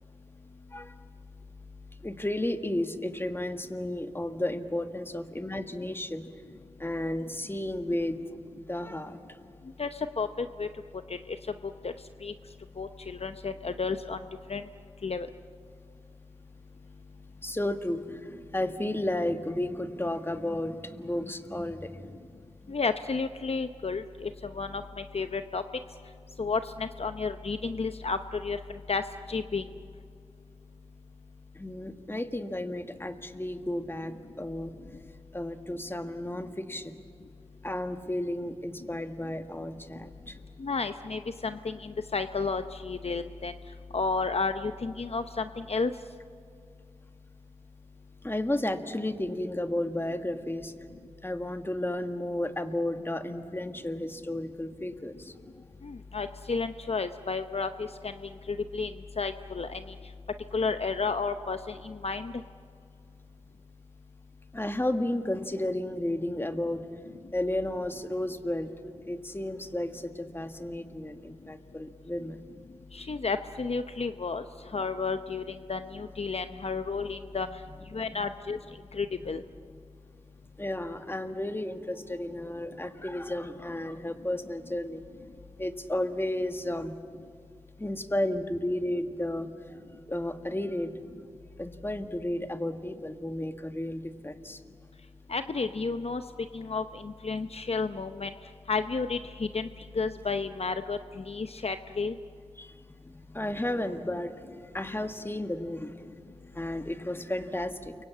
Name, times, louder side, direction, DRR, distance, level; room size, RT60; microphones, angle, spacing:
voice 1, 2.0-6.2 6.8-8.2 8.6-9.2 17.4-22.2 22.6-22.7 31.5-34.7 35.3-37.0 37.6-40.4 48.2-50.7 51.2-55.3 64.5-66.8 67.3-68.7 69.1-72.4 76.5-76.6 78.0-78.2 80.6-85.0 85.6-86.9 87.8-89.5 90.1-90.9 91.6-94.6 102.6-104.3 104.7-105.9 106.5-108.0, left 1 dB, 20° left, 7 dB, 1.7 m, -33 dB
voice 2, 9.8-10.7 11.1-11.4 11.6-11.9 12.2-12.3 12.8-14.2 14.5-14.6 15.0-15.3 22.7-25.6 26.4-29.0 29.3-29.7 40.6-43.5 43.9-45.9 55.8-59.9 60.5-62.3 72.9-74.4 74.7-77.5 77.9-78.6 78.9-79.4 95.3-96.2 96.5-98.3 98.7-99.7 99.9-102.2, left 4 dB, 60° left, 9 dB, 0.8 m, -32 dB
29.5 x 23.5 x 8.5 m, 2.4 s
wide cardioid pair, 50°, 12 cm